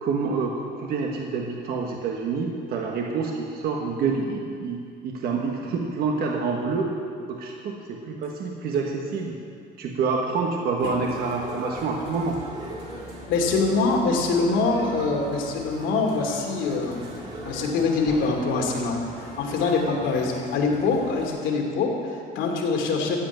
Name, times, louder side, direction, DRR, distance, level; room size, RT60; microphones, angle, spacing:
voice 1, 0.0-6.9 7.3-9.4 9.8-12.4, right 4 dB, 55° right, 0 dB, 1.4 m, -27 dB
sound 1, 10.8-21.3, right 1 dB, 35° right, 3.7 m, -39 dB
voice 2, 13.3-17.1 17.4-23.2, left 4 dB, 85° left, 0 dB, 2.8 m, -24 dB
14.5 x 8.1 x 9.2 m, 2.3 s
cardioid pair, 170°, 19 cm